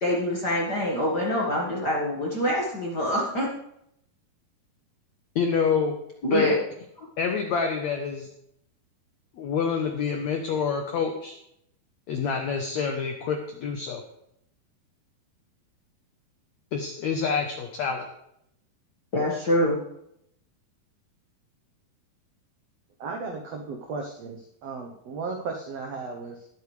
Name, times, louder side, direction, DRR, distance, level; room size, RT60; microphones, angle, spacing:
voice 1, 0.0-3.5 6.2-6.5 19.1-19.8, left 1 dB, 50° left, -3 dB, 1.2 m, -25 dB
voice 2, 5.3-5.9 6.3-6.5 7.2-8.3 9.4-11.4 12.1-14.0 16.7-18.1, left 6 dB, 80° left, 4 dB, 1.6 m, -27 dB
voice 3, 23.0-26.5, right 4 dB, 85° right, 2 dB, 1.4 m, -35 dB
20.0 x 8.3 x 3.3 m, 0.75 s
omnidirectional pair, 4.5 m